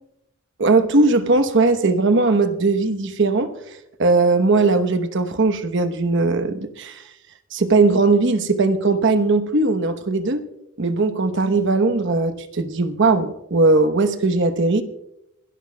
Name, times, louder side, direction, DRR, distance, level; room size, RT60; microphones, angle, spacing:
voice 1, 0.6-3.5 4.0-7.0 7.5-10.4 10.8-14.8, right 3 dB, 65° right, 10 dB, 1.0 m, -19 dB
27.0 x 12.5 x 2.3 m, 0.82 s
head